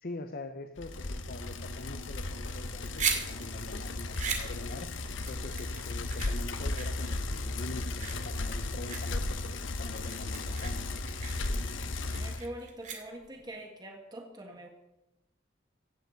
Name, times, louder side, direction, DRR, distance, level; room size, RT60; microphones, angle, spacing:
voice 1, 0.0-4.9 5.3-10.9, left 2 dB, 50° left, 8 dB, 0.9 m, -44 dB
Bicycle, 0.8-12.5, left 2 dB, 75° left, 1.1 m, -35 dB
sound 1, 2.6-13.5, right 6 dB, 40° right, 2.3 m, -39 dB
voice 2, 12.1-14.7, right 1 dB, 20° right, 2 dB, 1.6 m, -44 dB
16.0 x 7.2 x 7.8 m, 0.92 s
head